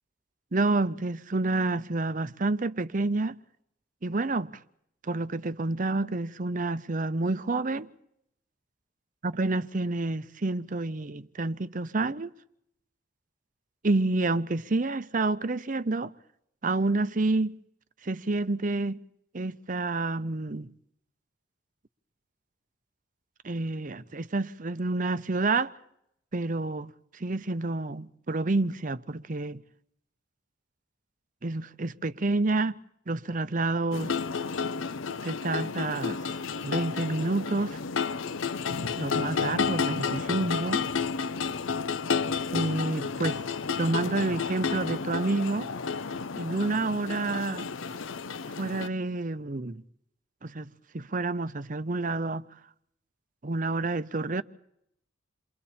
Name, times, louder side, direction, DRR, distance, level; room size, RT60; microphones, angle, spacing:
voice 1, 0.5-3.4 4.0-4.6 5.0-7.9 9.2-12.3 13.8-16.1 16.6-17.6 18.0-19.0 19.3-20.7 23.4-25.7 26.3-29.6 31.4-32.8 33.1-34.2 35.2-36.3 36.6-37.8 39.0-40.9 42.5-43.4 43.8-45.7 46.4-47.7 48.6-49.8 50.4-52.4 53.4-54.4, right 2 dB, 40° right, 0.7 m, -29 dB
sound 1, 33.9-48.9, left 5 dB, 85° left, 0.7 m, -31 dB
28.5 x 22.5 x 4.3 m
head